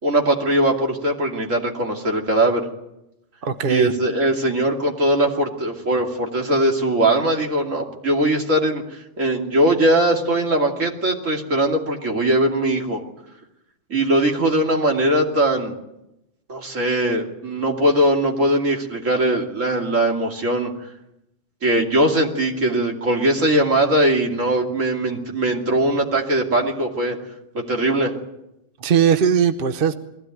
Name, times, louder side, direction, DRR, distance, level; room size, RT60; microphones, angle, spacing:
voice 1, 0.0-2.7 3.7-8.8 9.2-13.0 13.9-15.7 16.5-20.7 21.6-27.2 27.5-28.1, right 1 dB, 80° right, 1 dB, 3.1 m, -20 dB
voice 2, 3.4-3.9 28.8-29.9, right 7 dB, 50° right, 9 dB, 1.1 m, -19 dB
21.5 x 16.0 x 9.3 m, 0.88 s
omnidirectional pair, 1.3 m